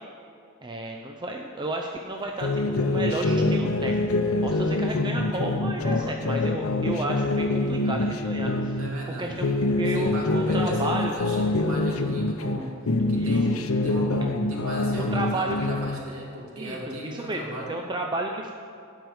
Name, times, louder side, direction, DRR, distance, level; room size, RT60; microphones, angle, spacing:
voice 1, 0.6-4.0 4.4-8.9 9.2-11.2 13.2-13.4 14.9-15.6 16.6-18.5, right 2 dB, 20° right, 1 dB, 0.5 m, -32 dB
sound 1, 2.4-8.9 9.3-12.6 12.9-16.0, left 2 dB, 80° left, 0.7 m, -25 dB
voice 2, 8.8-9.4 9.8-12.7 13.1-17.7, equal, 90° right, -3 dB, 2.4 m, -37 dB
11.5 x 4.9 x 7.9 m, 2.4 s
head